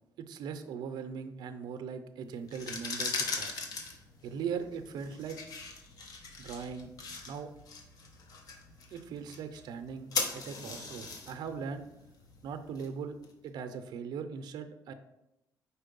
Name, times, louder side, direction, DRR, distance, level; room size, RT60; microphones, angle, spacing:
voice 1, 0.2-3.6 4.2-5.4 6.4-6.9 7.3-7.5 8.9-10.1 10.3-11.8 12.4-13.2 13.4-14.9, right 6 dB, 75° right, 9 dB, 0.5 m, -39 dB
sound 1, 2.4-13.3, left 4 dB, 60° left, 0.9 m, -40 dB
4.5 x 4.3 x 5.2 m, 0.87 s
cardioid pair, 135°, 7 cm